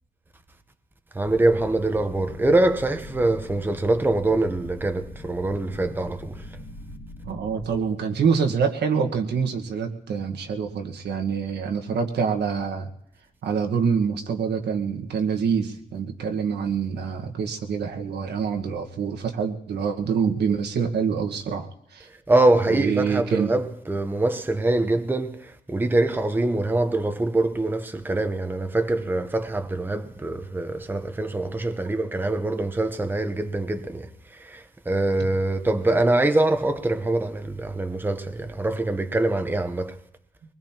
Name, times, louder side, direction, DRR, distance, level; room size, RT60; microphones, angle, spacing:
voice 1, 1.1-6.5 22.3-40.0, right 2 dB, 10° right, 0.9 m, -24 dB
sound 1, 1.2-7.8, left 1 dB, 75° left, 2.5 m, -41 dB
voice 2, 7.2-12.9 13.4-22.1 22.7-23.5, right 6 dB, 80° right, 1.5 m, -26 dB
23.5 x 20.0 x 3.0 m
cardioid pair, 110°, 17 cm